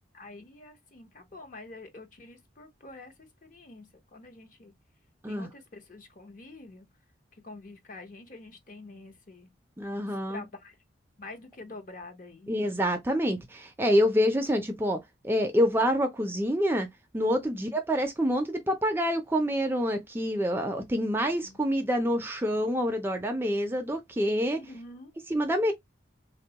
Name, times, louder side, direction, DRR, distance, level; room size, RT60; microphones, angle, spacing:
voice 1, 0.1-4.7 5.2-6.9 7.4-9.5 10.3-10.8 11.2-12.5 17.5-17.6 21.2-21.6 24.5-25.1, left 2 dB, 40° left, 0.7 m, -47 dB
voice 2, 9.8-10.4 12.5-16.9 17.1-24.6 25.3-25.7, equal, 10° right, 0.3 m, -27 dB
3.3 x 2.2 x 2.8 m
head